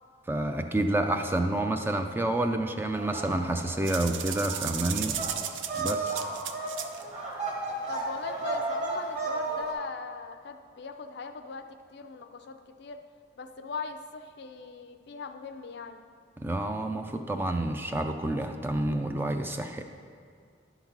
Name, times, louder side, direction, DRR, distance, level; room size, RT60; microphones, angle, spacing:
voice 1, 0.3-5.2 5.8-6.2 16.4-19.8, right 1 dB, 10° right, 5 dB, 0.3 m, -29 dB
sound 1, 2.9-9.7, right 3 dB, 35° right, 1.7 m, -34 dB
sound 2, 3.8-7.0, right 9 dB, 75° right, 0.4 m, -35 dB
voice 2, 5.7-6.1 7.9-13.0 13.4-16.0, left 4 dB, 60° left, 7 dB, 0.5 m, -40 dB
11.0 x 4.0 x 5.9 m, 2.1 s
head